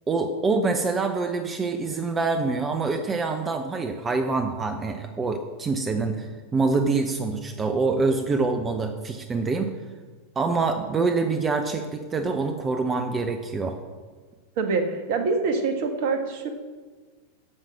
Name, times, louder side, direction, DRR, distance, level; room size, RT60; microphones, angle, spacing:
voice 1, 0.1-9.7 10.4-13.8, right 4 dB, 20° right, 6 dB, 0.8 m, -25 dB
voice 2, 14.6-16.5, right 4 dB, 50° right, 6 dB, 1.5 m, -25 dB
11.0 x 7.6 x 6.1 m, 1.4 s
figure-of-eight pair, 90°, 0 cm